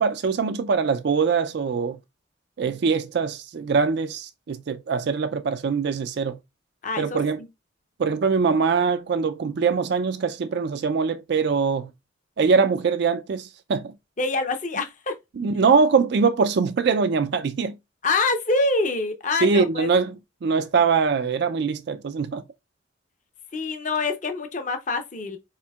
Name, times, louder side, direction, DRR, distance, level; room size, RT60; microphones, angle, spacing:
voice 1, 0.0-2.0 2.6-6.4 7.0-7.4 8.0-11.9 12.4-13.9 15.4-17.8 19.4-20.2 20.4-22.4, right 5 dB, 55° right, 0.4 m, -22 dB
voice 2, 6.8-7.5 14.2-15.1 18.0-19.9 23.5-25.4, left 3 dB, 40° left, 0.7 m, -25 dB
4.4 x 4.3 x 2.3 m
head